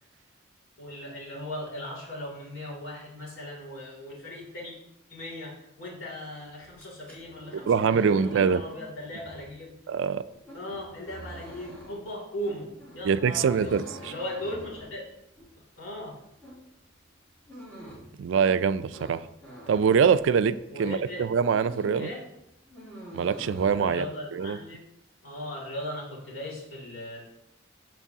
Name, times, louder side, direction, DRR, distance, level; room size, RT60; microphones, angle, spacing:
voice 1, 0.8-4.8 5.1-9.7 10.5-15.1 15.8-16.2 20.7-21.2 21.9-22.2 23.7-24.8 25.2-27.3, left 1 dB, 85° left, -3 dB, 2.7 m, -38 dB
sound 1, 6.7-20.7 21.1-22.1 22.3-23.7, equal, 5° left, 2.8 m, -46 dB
voice 2, 7.5-8.6 9.9-10.2 13.0-14.1 18.2-19.2 19.7-22.1 23.1-24.1 24.3-24.6, right 6 dB, 75° right, 15 dB, 0.3 m, -24 dB
13.0 x 4.6 x 2.8 m, 0.85 s
head